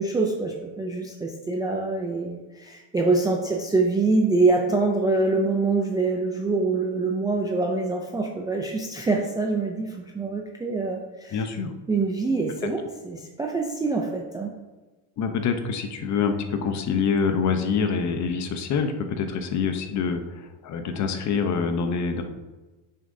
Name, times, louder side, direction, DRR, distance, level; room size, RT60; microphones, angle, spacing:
voice 1, 0.0-11.4 11.9-14.5, right 3 dB, 10° right, 0 dB, 0.3 m, -25 dB
voice 2, 11.3-11.7 15.2-22.2, left 5 dB, 40° left, 7 dB, 0.8 m, -26 dB
8.8 x 6.6 x 2.7 m, 1.2 s
cardioid pair, 140°, 46 cm